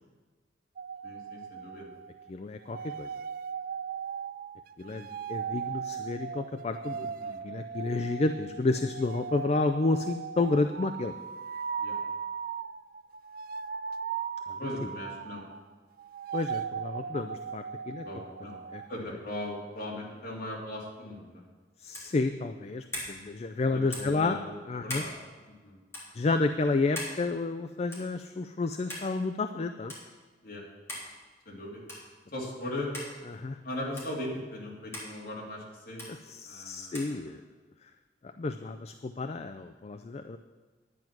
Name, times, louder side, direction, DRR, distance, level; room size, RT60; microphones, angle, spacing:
sound 1, 0.8-2.3 2.6-15.7 16.0-19.0, right 7 dB, 55° right, 0.3 m, -38 dB
voice 1, 1.0-1.9 4.8-5.0 6.9-7.4 11.8-12.0 14.6-15.4 18.0-18.6 18.9-21.4 23.6-25.1 25.5-25.8 30.4-30.6 31.4-31.8 32.3-32.9 33.6-36.0 36.4-37.3, left 1 dB, 55° left, -3 dB, 3.0 m, -39 dB
voice 2, 2.3-3.1 4.8-7.1 7.4-11.1 14.5-14.9 16.3-18.0 18.7-18.8 21.8-24.4 24.7-25.0 26.1-29.9 33.3-33.6 36.1-37.4 37.8-37.9 38.2-40.4, left 3 dB, 35° left, 7 dB, 0.4 m, -31 dB
sound 2, 21.9-22.2 22.9-23.1 23.9-24.2 24.9-25.1 25.9-26.1 27.0-27.2 27.9-28.1 28.9-29.1 29.9-30.0 30.9-31.1 31.9-32.1 32.9-33.1 34.0-34.1 34.9-35.1 36.0-36.1 36.9-37.1, left 1 dB, 15° left, 3.3 m, -38 dB
11.0 x 9.3 x 6.0 m, 1.3 s
head